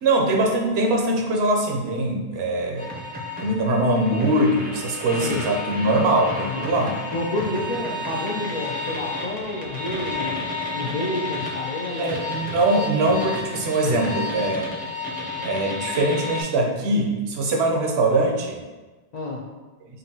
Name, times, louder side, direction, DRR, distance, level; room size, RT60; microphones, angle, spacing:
voice 1, 0.0-2.9 3.4-6.9 12.0-14.7 15.4-18.6, right 2 dB, 75° right, 1 dB, 0.9 m, -22 dB
sound 1, 2.8-16.4, left 2 dB, 10° right, 0.5 m, -31 dB
voice 2, 7.1-10.4 10.7-12.2 19.1-19.4, left 1 dB, 55° left, -2 dB, 0.5 m, -29 dB
5.2 x 2.5 x 2.8 m, 1.2 s
omnidirectional pair, 1.1 m